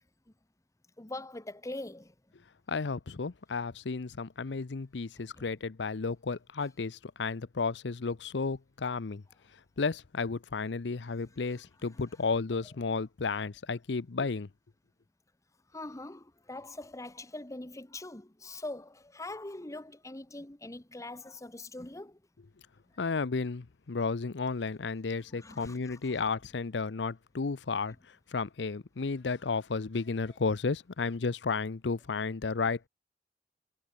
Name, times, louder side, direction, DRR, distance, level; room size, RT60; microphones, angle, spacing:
voice 1, 1.0-2.1 5.3-5.5 11.5-11.6 11.9-12.0 15.7-22.2 25.3-26.2, left 2 dB, 20° left, 1.1 m, -43 dB
voice 2, 2.7-9.2 9.8-14.5 23.0-28.0 28.3-32.9, left 4 dB, 85° left, 0.7 m, -33 dB
head